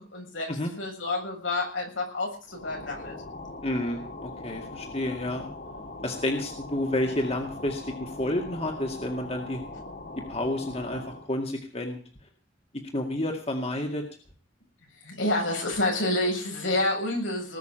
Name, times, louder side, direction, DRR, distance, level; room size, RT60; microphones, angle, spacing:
voice 1, 0.0-0.5 0.8-3.1 15.0-17.6, left 2 dB, 85° left, 1 dB, 7.3 m, -28 dB
sound 1, 2.5-11.3, left 2 dB, 50° left, 2.4 m, -41 dB
voice 2, 3.6-5.5 6.0-9.6 10.3-12.0 12.9-14.0, left 1 dB, 30° left, 3 dB, 2.1 m, -30 dB
19.5 x 6.6 x 8.9 m, 0.39 s
head